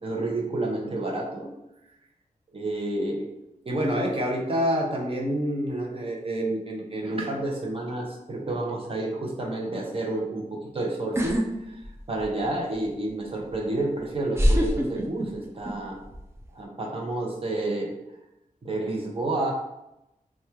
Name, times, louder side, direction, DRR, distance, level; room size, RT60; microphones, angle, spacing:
voice 1, 0.0-1.5 2.5-3.3 3.6-11.4 11.7-11.8 12.1-16.0 16.5-18.0 18.6-19.5, right 1 dB, 40° right, 0 dB, 0.8 m, -29 dB
sound 1, 11.2-11.5 11.8-12.5 13.5-13.6 14.3-15.7 16.0-16.4, equal, 20° right, 0.5 m, -23 dB
3.1 x 2.4 x 4.3 m, 0.88 s
wide cardioid pair, 130°, 14 cm